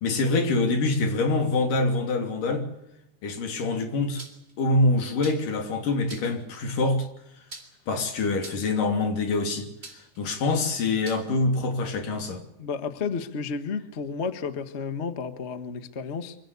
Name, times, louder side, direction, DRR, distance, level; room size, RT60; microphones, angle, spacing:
voice 1, 0.0-2.7 3.2-4.2 4.6-7.1 7.9-9.7 10.2-12.4, left 2 dB, 85° left, 6 dB, 4.7 m, -25 dB
sound 1, 4.2-4.5 5.2-5.6 6.1-6.4 7.5-8.0 8.4-8.8 9.8-10.2 11.0-11.2, right 2 dB, 20° right, 3.4 m, -43 dB
voice 2, 12.6-16.4, left 5 dB, 45° left, 10 dB, 0.8 m, -32 dB
25.5 x 17.5 x 8.4 m, 0.84 s
omnidirectional pair, 3.7 m